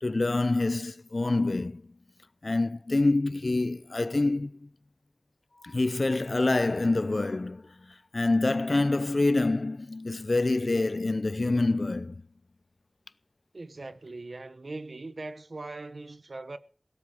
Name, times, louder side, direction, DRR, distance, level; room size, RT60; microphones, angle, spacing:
voice 1, 0.0-1.9 2.4-4.7 5.6-12.2, left 2 dB, 70° left, 0.6 m, -26 dB
voice 2, 13.5-16.6, right 2 dB, 85° right, 1.1 m, -40 dB
17.0 x 12.5 x 5.0 m
wide cardioid pair, 55°, 0 cm